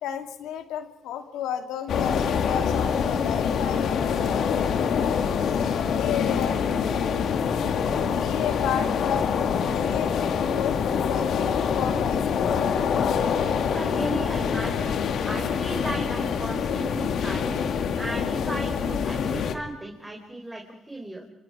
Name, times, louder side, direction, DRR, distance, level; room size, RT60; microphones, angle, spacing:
voice 1, 0.0-5.2 5.6-6.6 7.9-9.2 9.6-12.5, left 9 dB, 90° left, 6 dB, 2.1 m, -33 dB
sound 1, 1.9-19.5, left 7 dB, 70° left, 1.9 m, -25 dB
voice 2, 13.7-14.9 15.3-17.6 17.9-21.2, right 1 dB, 10° right, 1 dB, 4.1 m, -35 dB
28.5 x 27.0 x 4.8 m, 0.96 s
cardioid pair, 90°, 0 cm